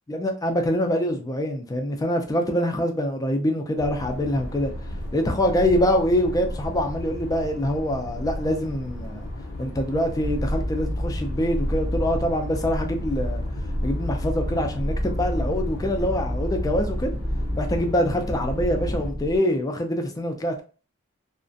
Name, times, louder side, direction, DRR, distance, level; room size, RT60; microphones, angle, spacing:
voice 1, 0.1-4.7 5.1-9.3 9.6-13.4 13.8-17.1 17.6-20.6, equal, 15° left, 0.3 m, -25 dB
sound 1, 3.8-19.1, left 1 dB, 85° left, 0.5 m, -34 dB
sound 2, 10.2-19.4, equal, ahead, 0.7 m, -30 dB
2.4 x 2.1 x 2.5 m
head